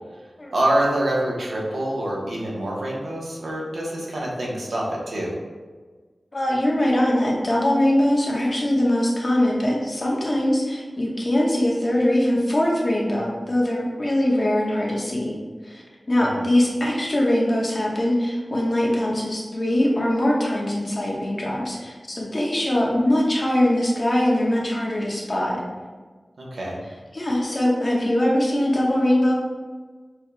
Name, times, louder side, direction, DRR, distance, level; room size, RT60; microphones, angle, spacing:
voice 1, 0.5-5.3 16.1-16.4 26.4-26.8, right 1 dB, 85° right, -4 dB, 1.0 m, -26 dB
voice 2, 6.3-25.6 27.1-29.4, left 1 dB, 45° left, -3 dB, 1.0 m, -22 dB
6.2 x 2.3 x 3.2 m, 1.4 s
wide cardioid pair, 55°, 0 cm